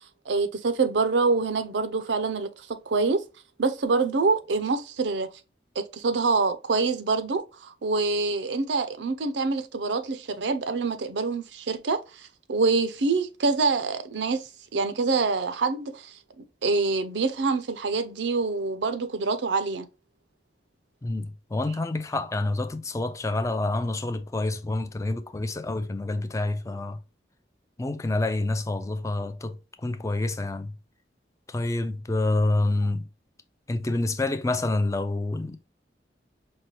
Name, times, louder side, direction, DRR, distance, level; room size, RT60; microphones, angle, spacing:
voice 1, 0.3-3.2 3.6-5.3 5.8-19.9, right 4 dB, 80° right, 0.5 m, -26 dB
voice 2, 21.0-27.0 27.8-30.7 31.5-33.1 33.7-35.6, left 2 dB, 15° left, 0.3 m, -28 dB
5.4 x 2.2 x 3.1 m
head